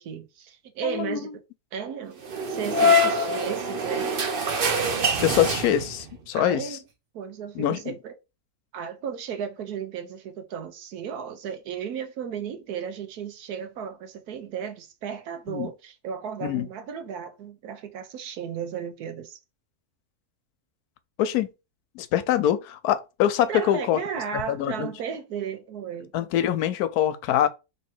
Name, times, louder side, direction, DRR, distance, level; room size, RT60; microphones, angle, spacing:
voice 1, 0.0-1.3 1.7-2.2 2.5-4.2 6.3-6.8 7.1-8.1 8.7-19.4 23.5-26.1, right 7 dB, 85° right, 1.3 m, -34 dB
voice 2, 0.8-1.3 5.2-6.7 7.6-7.9 15.5-15.7 16.4-16.7 21.2-21.5 22.0-24.0 24.3-24.9 26.1-27.5, left 11 dB, 85° left, 1.1 m, -24 dB
sound 1, 2.2-6.1, left 1 dB, 45° right, 0.8 m, -24 dB
3.2 x 3.0 x 4.4 m
omnidirectional pair, 1.6 m